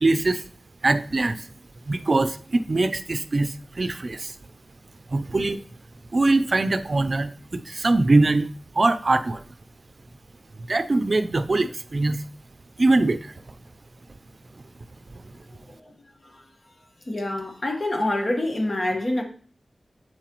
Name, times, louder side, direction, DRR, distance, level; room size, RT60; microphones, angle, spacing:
voice 1, 0.0-0.4 0.8-1.5 1.9-4.3 5.1-5.6 6.1-9.4 10.7-12.2 12.8-13.4, right 2 dB, 55° right, 0.5 m, -22 dB
voice 2, 17.1-19.2, left 1 dB, 50° left, 1.3 m, -26 dB
7.5 x 4.8 x 3.0 m
cardioid pair, 50°, 0 cm